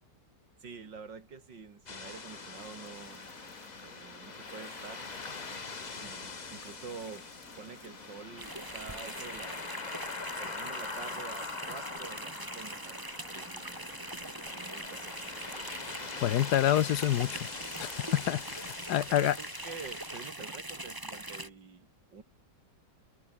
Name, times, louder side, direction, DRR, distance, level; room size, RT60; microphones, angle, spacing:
voice 1, 0.6-3.3 3.8-5.1 6.0-7.3 7.6-9.6 10.4-14.2 14.5-15.3 19.1-22.2, right 5 dB, 80° right, 3.4 m, -47 dB
sound 1, 1.9-20.3, left 4 dB, 30° left, 1.1 m, -44 dB
sound 2, 2.0-18.5, left 2 dB, 45° left, 5.3 m, -53 dB
sound 3, 8.4-21.5, right 1 dB, 10° right, 2.3 m, -42 dB
voice 2, 16.2-17.5 17.8-19.4, left 12 dB, 70° left, 1.2 m, -27 dB
omnidirectional pair, 1.9 m